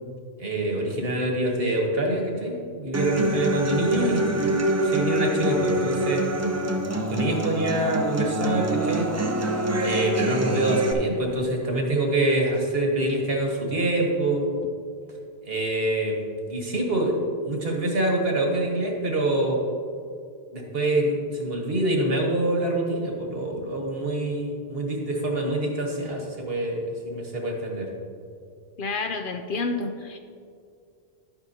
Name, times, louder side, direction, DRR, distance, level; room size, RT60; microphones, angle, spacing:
voice 1, 0.4-6.3 7.1-9.1 9.8-14.4 15.4-16.2 16.5-17.2 17.4-19.6 20.5-27.9, right 1 dB, 60° right, 1 dB, 1.5 m, -25 dB
Human voice / Acoustic guitar, 2.9-10.9, right 1 dB, 25° right, 0.3 m, -25 dB
voice 2, 28.8-30.2, left 3 dB, 60° left, 6 dB, 0.6 m, -29 dB
11.0 x 8.8 x 2.8 m, 2.3 s
omnidirectional pair, 1.1 m